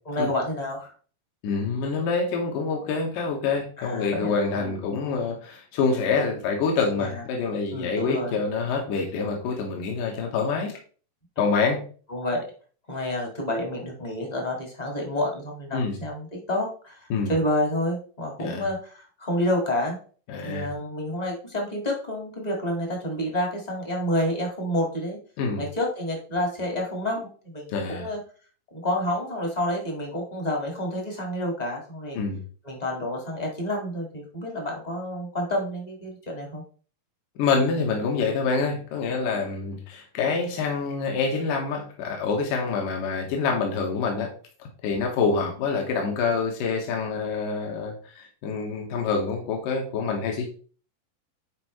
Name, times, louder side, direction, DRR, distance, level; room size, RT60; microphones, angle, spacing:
voice 1, 0.0-0.9 3.8-4.8 7.0-7.2 7.7-8.3 12.1-12.5 12.9-20.0 20.4-25.2 25.6-28.2 28.7-32.2 32.6-36.6, left 1 dB, 25° left, 0 dB, 0.9 m, -29 dB
voice 2, 1.4-10.7 11.4-11.8 15.7-16.0 17.1-17.4 18.4-18.7 20.3-20.7 25.4-25.6 27.7-28.1 32.2-32.4 37.4-44.3 44.8-50.5, left 4 dB, 75° left, 1 dB, 2.8 m, -26 dB
10.0 x 4.6 x 3.1 m, 0.40 s
omnidirectional pair, 3.8 m